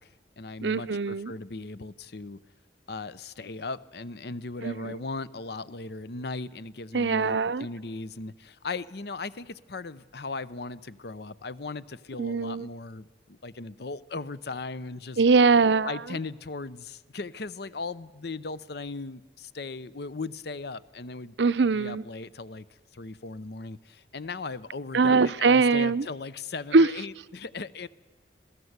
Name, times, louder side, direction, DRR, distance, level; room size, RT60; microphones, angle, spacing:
voice 1, 0.0-2.4 2.9-15.2 15.8-21.4 21.7-22.6 22.9-27.9, left 3 dB, 60° left, 0.8 m, -38 dB
voice 2, 0.6-1.3 4.6-5.0 6.9-7.6 12.2-12.7 15.2-15.9 21.4-22.0 24.9-26.0 26.7-26.9, right 4 dB, 75° right, 0.6 m, -22 dB
26.0 x 17.5 x 8.1 m
head